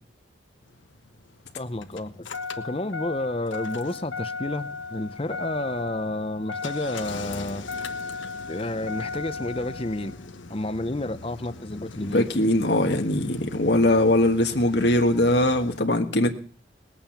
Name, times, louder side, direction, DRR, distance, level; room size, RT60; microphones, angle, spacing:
Engine starting, 0.7-15.8, left 4 dB, 90° left, 1.3 m, -37 dB
voice 1, 1.6-2.3 2.6-7.6 8.5-10.2 10.5-12.3, left 1 dB, 30° left, 0.9 m, -30 dB
voice 2, 12.0-16.3, left 1 dB, 60° left, 1.5 m, -21 dB
20.5 x 9.0 x 7.3 m
head